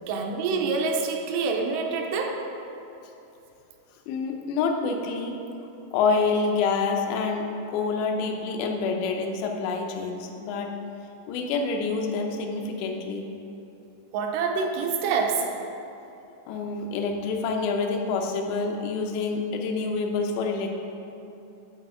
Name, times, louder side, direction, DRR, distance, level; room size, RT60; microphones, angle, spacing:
voice 1, 0.1-2.4 14.1-15.5, right 4 dB, 85° right, 2 dB, 2.7 m, -26 dB
voice 2, 4.1-5.4 5.9-10.7 11.3-13.3 16.5-20.7, left 4 dB, 90° left, 2 dB, 3.0 m, -27 dB
11.0 x 4.2 x 4.8 m, 2.9 s
omnidirectional pair, 4.8 m